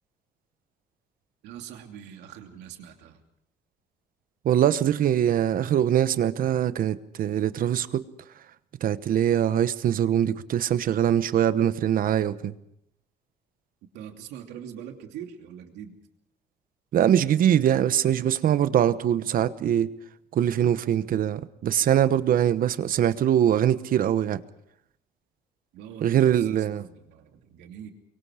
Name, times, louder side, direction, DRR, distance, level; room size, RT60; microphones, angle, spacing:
voice 1, 1.4-3.2 13.9-16.0 25.7-27.9, right 9 dB, 85° right, 2.8 m, -43 dB
voice 2, 4.4-8.0 8.8-12.5 16.9-19.9 20.3-24.4 26.0-26.8, right 10 dB, 55° right, 1.1 m, -23 dB
23.5 x 23.5 x 5.0 m
cardioid pair, 110°, 17 cm